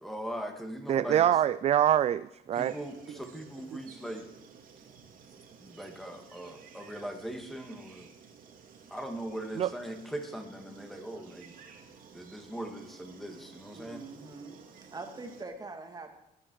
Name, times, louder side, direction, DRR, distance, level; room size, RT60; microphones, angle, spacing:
voice 1, 0.0-1.3 2.5-4.3 5.6-8.1 8.9-11.5 12.1-14.0, right 1 dB, ahead, 4 dB, 2.3 m, -40 dB
voice 2, 0.9-2.7 3.1-3.2 9.6-9.7, right 10 dB, 40° right, 16 dB, 0.4 m, -25 dB
sound 1, 2.5-15.4, right 6 dB, 55° right, 2.3 m, -54 dB
voice 3, 13.7-14.6 14.9-16.1, right 3 dB, 25° right, 4 dB, 2.4 m, -43 dB
18.5 x 9.8 x 4.8 m, 0.84 s
cardioid pair, 110°, 17 cm